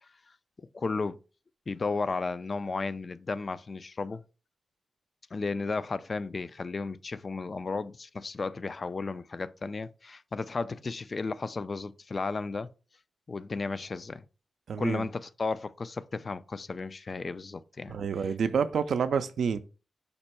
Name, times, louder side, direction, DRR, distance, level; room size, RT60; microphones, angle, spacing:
voice 1, 0.7-1.2 1.7-4.2 5.3-12.7 13.3-14.2 14.8-18.0, left 4 dB, 50° left, 0.3 m, -34 dB
voice 2, 14.7-15.1 17.9-19.6, right 6 dB, 80° right, 0.4 m, -28 dB
5.3 x 2.2 x 4.2 m
cardioid pair, 50°, 0 cm